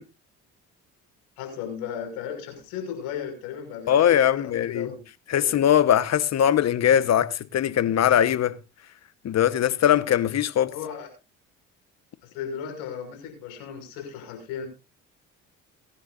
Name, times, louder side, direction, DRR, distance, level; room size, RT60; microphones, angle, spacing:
voice 1, 1.4-5.0 5.3-5.5 10.7-11.1 12.2-14.7, left 8 dB, 85° left, 6.3 m, -35 dB
voice 2, 3.9-4.9 5.3-8.6 9.2-10.7, left 10 dB, 50° left, 1.2 m, -21 dB
23.0 x 10.5 x 2.6 m
supercardioid pair, 80°, 34 cm